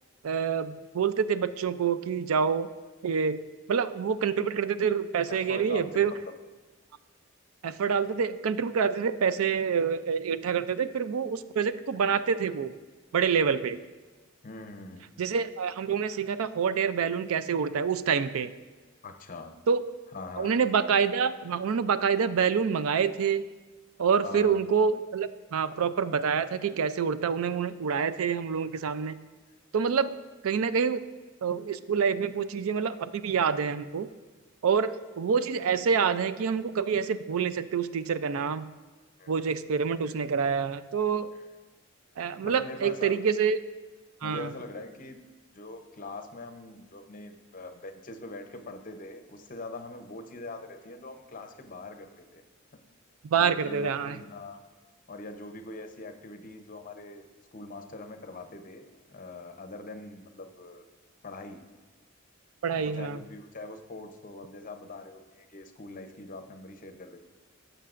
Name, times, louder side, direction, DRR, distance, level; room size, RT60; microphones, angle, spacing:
voice 1, 0.2-2.7 3.0-3.4 3.7-6.1 7.6-12.7 13.1-13.8 15.2-18.5 19.7-19.8 20.4-23.4 24.0-29.2 29.7-30.1 30.4-31.0 31.4-34.1 34.6-38.7 39.3-41.3 42.2-43.6 44.2-44.5 53.3-54.2 62.6-63.2, right 6 dB, 85° right, 14 dB, 0.4 m, -27 dB
voice 2, 5.3-6.3 13.6-13.7 14.4-15.2 19.0-19.6 20.1-20.5 24.2-24.6 39.2-39.3 41.3-41.4 42.4-43.2 44.2-45.2 45.5-52.4 53.3-54.6 55.1-60.8 61.2-61.6 62.8-67.2, left 2 dB, 40° left, 6 dB, 0.8 m, -43 dB
15.5 x 6.8 x 2.5 m, 1.3 s
head